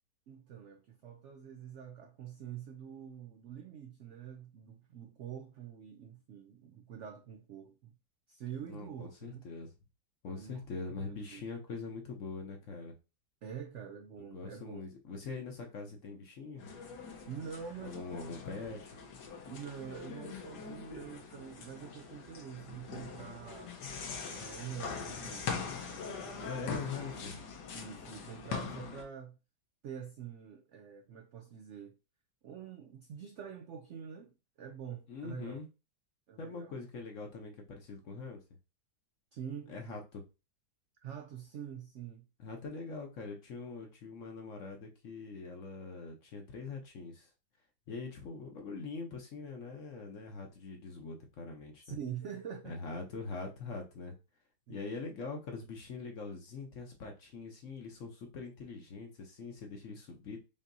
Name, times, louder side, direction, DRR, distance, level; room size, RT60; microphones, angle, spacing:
voice 1, 0.3-7.9 8.3-9.4 10.3-10.6 11.0-11.4 13.4-14.9 17.3-18.3 19.5-23.8 24.3-26.8 27.7-29.4 29.8-32.0 32.4-35.6 36.3-36.7 39.3-39.8 41.0-42.3 51.8-52.8 54.7-54.9, right 8 dB, 80° right, 0.6 m, -46 dB
voice 2, 8.7-9.7 10.2-13.0 14.3-16.7 17.8-19.0 26.4-27.4 35.1-35.7 36.4-38.4 39.7-40.2 42.4-47.3 47.9-52.0 52.6-54.2 54.7-60.4, left 4 dB, 55° left, 1.0 m, -43 dB
sound 1, 16.6-29.0, left 5 dB, 85° left, 1.5 m, -42 dB
5.3 x 2.8 x 2.6 m
omnidirectional pair, 1.8 m